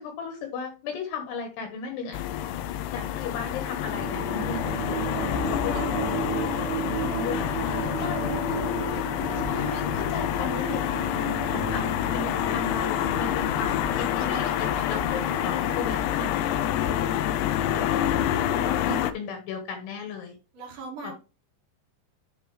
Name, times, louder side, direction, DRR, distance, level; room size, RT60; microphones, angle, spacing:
voice 1, 0.0-2.2 2.9-5.0 5.5-5.8 6.8-7.5 7.9-8.4 9.4-16.9 17.7-20.4 21.0-21.1, left 5 dB, 70° left, 5 dB, 2.9 m, -36 dB
sound 1, 2.1-19.1, left 11 dB, 90° left, 2.4 m, -27 dB
sound 2, 3.7-18.6, right 14 dB, 85° right, 2.8 m, -37 dB
voice 2, 6.4-8.0 20.5-21.1, right 3 dB, 55° right, -3 dB, 3.3 m, -41 dB
Scratching (performance technique), 7.5-16.0, left 1 dB, 30° left, 1.5 m, -38 dB
11.0 x 4.1 x 3.2 m, 0.32 s
omnidirectional pair, 5.5 m